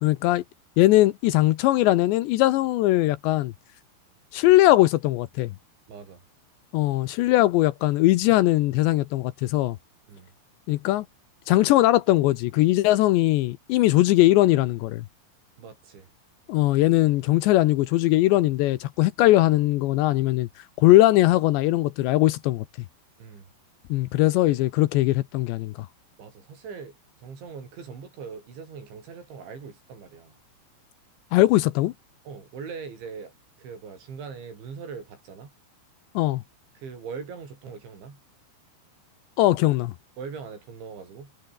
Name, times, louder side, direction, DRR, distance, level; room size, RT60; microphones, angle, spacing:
voice 1, 0.0-0.4 0.8-3.5 4.3-5.5 6.7-9.8 10.7-11.1 11.5-15.0 16.5-20.5 20.8-22.6 23.9-25.9 31.3-31.9 36.2-36.4 39.4-39.9, left 16 dB, 75° left, 2.9 m, -20 dB
voice 2, 5.9-6.2 10.1-10.3 15.6-16.1 23.2-23.5 24.5-24.6 26.2-30.4 32.3-35.5 36.8-38.2 40.2-41.3, right 5 dB, 70° right, 8.2 m, -41 dB
omnidirectional pair, 5.5 m